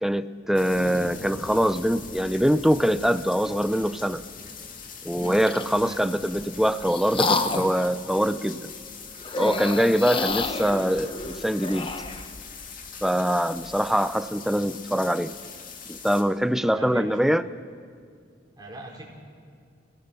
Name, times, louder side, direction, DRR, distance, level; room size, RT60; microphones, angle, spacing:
voice 1, 0.0-4.2 5.0-8.7 9.4-11.9 13.0-15.3 15.9-17.4, equal, ahead, 12 dB, 0.5 m, -23 dB
sound 1, 0.5-16.2, left 5 dB, 45° left, 2.1 m, -42 dB
Thunder, 0.7-5.6 5.8-5.9 6.1-6.7 7.2-8.4, left 1 dB, 90° left, 1.8 m, -45 dB
sound 2, 5.1-5.7 6.4-7.8 9.2-12.3, left 3 dB, 30° left, 1.0 m, -29 dB
voice 2, 5.7-6.1 16.6-17.2 18.6-19.1, right 1 dB, 20° right, -2 dB, 4.6 m, -42 dB
29.0 x 17.5 x 7.0 m, 2.2 s
head